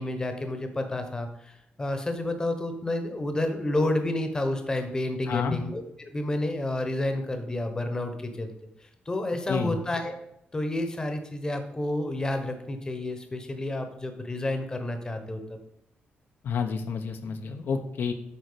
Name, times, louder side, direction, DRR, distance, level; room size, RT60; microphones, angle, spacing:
voice 1, 0.0-8.5 9.1-10.1 10.5-15.4, left 1 dB, 20° left, 6 dB, 1.1 m, -30 dB
voice 2, 5.3-5.6 9.5-9.8 16.4-18.1, left 5 dB, 70° left, 6 dB, 0.9 m, -29 dB
8.6 x 4.5 x 6.8 m, 0.77 s
wide cardioid pair, 145°, 4 cm